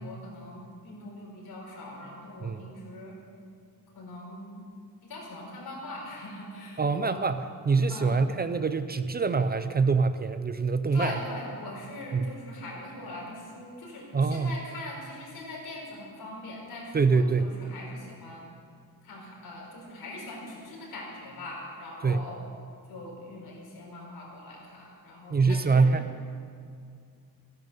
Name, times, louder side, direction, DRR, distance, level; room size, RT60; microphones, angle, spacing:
voice 1, 0.0-3.2 3.9-4.6 5.0-7.2 7.9-8.2 10.9-18.4 19.0-22.4 22.9-26.0, left 2 dB, 85° left, -2 dB, 4.6 m, -41 dB
voice 2, 2.4-2.7 6.8-11.2 12.1-12.3 14.1-14.6 16.9-17.5 22.0-22.3 25.3-26.3, right 4 dB, 25° right, 11 dB, 0.5 m, -25 dB
16.0 x 10.5 x 6.9 m, 2.3 s
wide cardioid pair, 160°, 36 cm